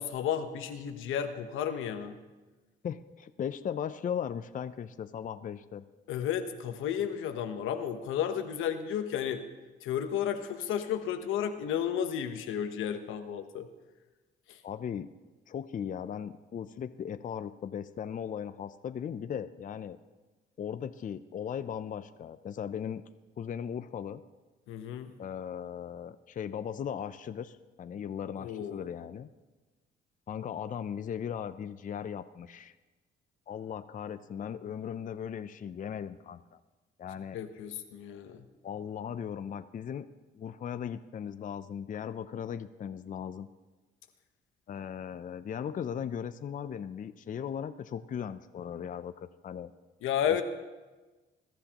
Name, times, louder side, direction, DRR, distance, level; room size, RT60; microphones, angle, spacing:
voice 1, 0.0-2.2 6.1-9.4 9.8-13.7 14.5-14.6 24.7-25.1 28.4-28.9 37.3-38.4 50.0-50.4, left 9 dB, 85° left, 7 dB, 1.1 m, -32 dB
voice 2, 2.8-5.8 14.6-15.1 15.5-20.0 20.6-23.0 23.4-24.2 25.2-29.3 30.3-32.7 33.5-36.6 37.0-37.4 38.6-40.1 40.3-43.5 44.7-49.7, left 8 dB, 40° left, 11 dB, 0.5 m, -38 dB
22.0 x 12.0 x 3.0 m, 1.2 s
cardioid pair, 90°, 20 cm